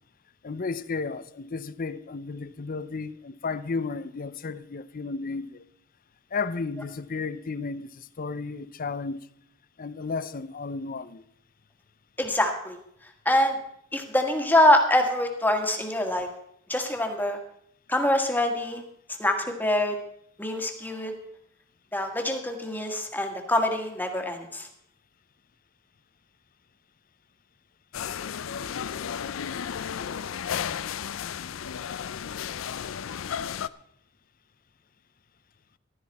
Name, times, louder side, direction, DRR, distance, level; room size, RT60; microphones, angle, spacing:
voice 1, 0.4-5.6 6.3-9.3 9.8-11.2, left 4 dB, 45° left, 0.6 m, -33 dB
voice 2, 12.2-12.8 13.2-13.6 13.9-16.3 16.7-17.4 17.9-18.8 19.2-20.0 20.4-21.1 21.9-24.7, left 1 dB, 10° left, 1.6 m, -24 dB
sound 1, 27.9-33.7, left 8 dB, 90° left, 0.4 m, -33 dB
15.0 x 12.0 x 4.2 m
head